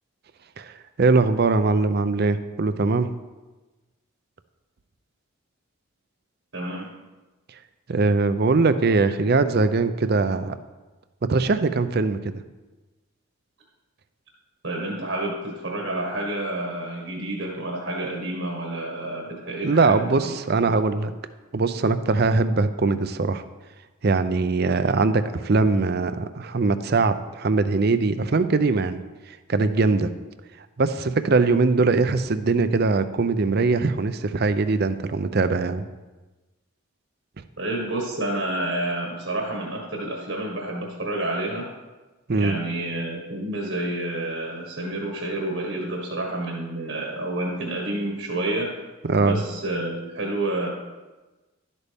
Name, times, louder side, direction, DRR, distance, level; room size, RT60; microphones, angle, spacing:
voice 1, 0.6-3.1 7.9-10.6 11.3-12.3 19.6-21.1 21.5-23.4 24.0-29.0 29.5-30.1 30.8-35.8 42.3-42.6 49.1-49.4, right 3 dB, 50° right, 11 dB, 0.5 m, -21 dB
voice 2, 6.5-6.9 14.6-20.4 20.6-20.8 37.6-41.7 42.3-48.7 49.2-50.7, right 1 dB, 70° right, -1 dB, 1.6 m, -29 dB
11.5 x 8.3 x 3.5 m, 1.2 s
head